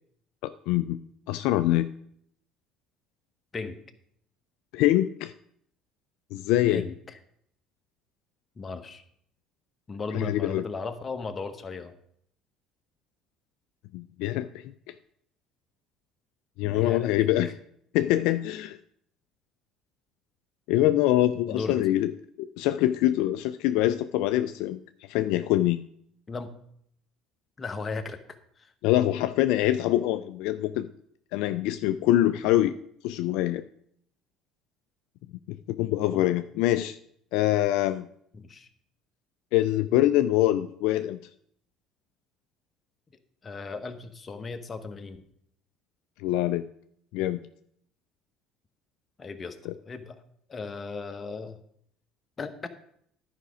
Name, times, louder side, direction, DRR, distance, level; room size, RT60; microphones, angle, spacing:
voice 1, 0.4-1.0 1.3-1.9 4.7-5.3 6.3-6.8 10.1-10.6 13.9-14.9 16.6-17.6 17.9-18.8 20.7-22.1 22.4-24.8 25.1-25.9 28.8-30.9 31.3-32.8 33.0-33.7 35.5-37.0 37.3-38.1 39.5-41.2 46.2-46.7 47.1-47.4 49.7-49.8, left 14 dB, 75° left, 11 dB, 0.3 m, -24 dB
voice 2, 6.7-7.2 8.6-9.0 9.9-11.9 16.6-17.3 21.5-22.0 26.3-26.6 27.6-28.7 32.3-32.5 36.1-36.3 38.3-38.7 43.4-45.2 49.2-49.6 49.8-50.2 50.5-51.6 52.4-52.7, left 4 dB, 30° left, 8 dB, 1.0 m, -36 dB
11.0 x 5.1 x 4.9 m, 0.69 s
hypercardioid pair, 70°, 0 cm